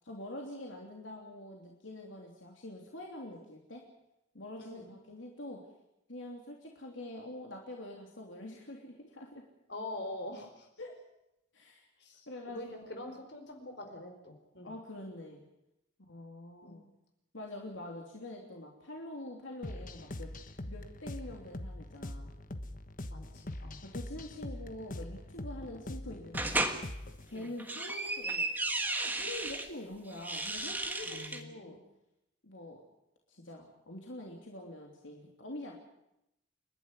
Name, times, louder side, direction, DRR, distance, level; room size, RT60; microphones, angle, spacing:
voice 1, 0.0-3.8 4.3-5.6 6.1-9.4 10.8-11.0 11.5-11.9 12.3-12.7 14.6-15.4 16.1-16.8 17.3-20.3 20.7-22.3 23.8-26.7 27.3-28.5 29.0-31.8 32.4-32.8 33.3-35.7, left 1 dB, 80° left, 0 dB, 3.2 m, -45 dB
voice 2, 9.7-10.7 12.0-14.7 16.6-16.8 23.1-23.8 27.3-27.5 31.0-31.8, left 1 dB, 60° left, 5 dB, 4.5 m, -44 dB
sound 1, 19.6-27.3, left 1 dB, 40° left, 1.3 m, -43 dB
sound 2, 26.3-26.8 27.4-29.7 30.1-31.4, right 2 dB, 10° right, 1.5 m, -34 dB
29.5 x 11.5 x 9.9 m, 0.86 s
head